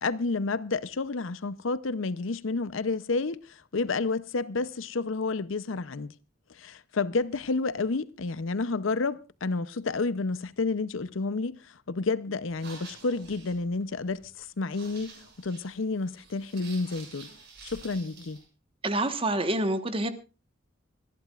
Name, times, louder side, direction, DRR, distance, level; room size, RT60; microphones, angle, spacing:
voice 1, 0.0-3.4 3.7-6.1 6.6-11.6 11.9-15.1 15.4-17.3 17.6-18.4, left 3 dB, 75° left, 0.7 m, -30 dB
sound 1, 12.4-18.4, right 4 dB, 55° right, 7.0 m, -49 dB
voice 2, 18.8-20.1, right 1 dB, 25° right, 1.3 m, -27 dB
25.5 x 11.5 x 2.4 m
head